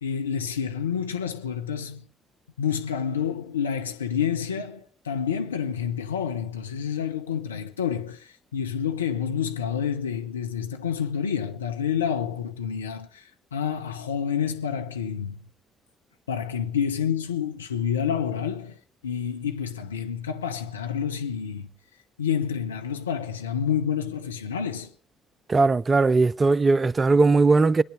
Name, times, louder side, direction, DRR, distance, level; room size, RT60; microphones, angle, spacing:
voice 1, 0.0-2.0 2.6-13.2 13.5-15.4 16.3-18.8 19.0-21.7 22.2-24.9, left 8 dB, 85° left, 1.1 m, -28 dB
voice 2, 25.5-27.8, right 3 dB, 30° right, 0.6 m, -19 dB
22.5 x 10.5 x 5.1 m
figure-of-eight pair, 45°, 0 cm